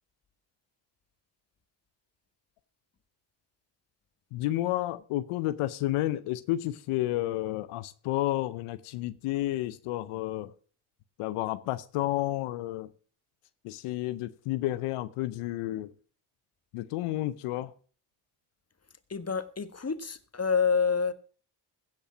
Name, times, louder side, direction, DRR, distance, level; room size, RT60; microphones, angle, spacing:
voice 1, 4.3-10.5 11.2-12.9 13.6-15.9 16.7-17.7, left 15 dB, 85° left, 0.7 m, -31 dB
voice 2, 19.1-21.1, left 5 dB, 30° left, 1.5 m, -28 dB
16.0 x 5.5 x 6.1 m
supercardioid pair, 45°, 50 cm